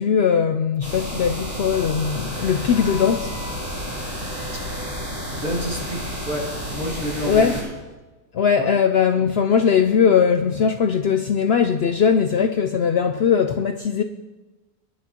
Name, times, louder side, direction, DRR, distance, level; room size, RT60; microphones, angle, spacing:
voice 1, 0.0-3.4 7.3-7.6 8.3-14.0, left 7 dB, 75° left, 0.5 m, -20 dB
sound 1, 0.8-7.6, equal, 20° right, 4.9 m, -31 dB
Wind instrument woodwind instrument, 1.7-5.1, left 1 dB, 55° left, 2.2 m, -40 dB
voice 2, 5.2-7.6 8.6-8.7, equal, 60° right, 3.2 m, -29 dB
23.0 x 10.5 x 2.9 m
omnidirectional pair, 1.6 m